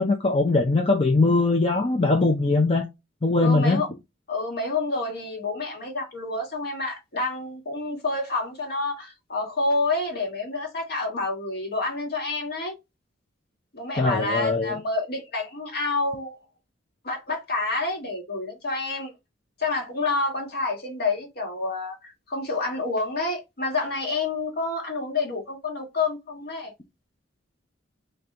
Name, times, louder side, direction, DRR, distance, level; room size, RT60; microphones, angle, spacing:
voice 1, 0.0-2.9 3.2-3.8 14.0-14.8, left 3 dB, 30° left, 0.6 m, -21 dB
voice 2, 3.4-3.9 4.3-12.8 13.7-16.4 17.0-19.1 19.6-26.7, left 3 dB, 55° left, 1.7 m, -28 dB
3.8 x 3.3 x 2.9 m
head